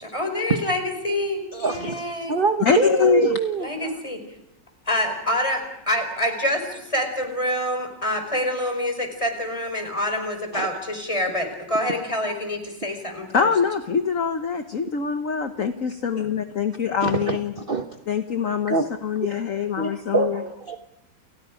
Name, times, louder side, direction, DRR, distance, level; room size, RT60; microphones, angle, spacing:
voice 1, 0.0-2.4 3.6-4.2 4.9-13.5, left 1 dB, 15° left, 5 dB, 4.9 m, -26 dB
voice 2, 1.5-2.0 2.3-3.9 10.5-10.7 17.0-18.0 18.7-18.9 19.2-19.3 19.8-20.8, right 4 dB, 35° right, 7 dB, 1.0 m, -25 dB
voice 3, 2.6-3.4 13.3-17.5 18.1-18.8 19.0-20.4, left 6 dB, 50° left, 7 dB, 1.4 m, -23 dB
29.5 x 29.5 x 5.1 m, 0.88 s
omnidirectional pair, 2.0 m